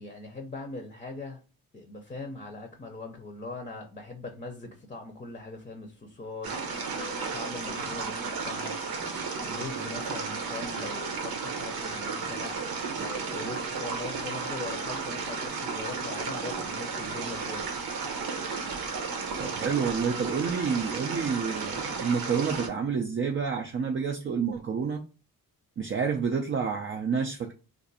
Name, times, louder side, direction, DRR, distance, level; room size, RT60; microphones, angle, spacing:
voice 1, 0.0-1.4 1.7-8.7 9.4-12.6 12.9-17.8, left 2 dB, 20° left, 0.6 m, -41 dB
sound 1, 6.4-22.7, right 4 dB, 90° right, 0.9 m, -33 dB
voice 2, 19.4-25.0 25.8-27.5, right 6 dB, 35° right, 0.4 m, -29 dB
2.6 x 2.5 x 3.9 m
cardioid pair, 125°, 36 cm